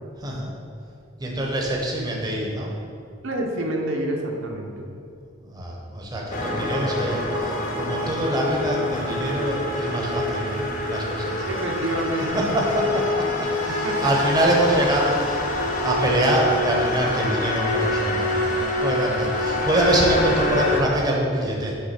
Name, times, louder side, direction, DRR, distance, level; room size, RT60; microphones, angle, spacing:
voice 1, 0.2-0.5 1.2-2.7 5.4-11.5 12.3-15.4 15.8-21.8, right 1 dB, 20° right, -1 dB, 0.8 m, -25 dB
voice 2, 3.2-4.9 11.4-12.5 13.7-14.3, right 1 dB, 85° right, 0 dB, 0.8 m, -28 dB
sound 1, 6.3-20.8, left 1 dB, 45° left, 0.8 m, -26 dB
5.3 x 3.7 x 5.8 m, 2.4 s
head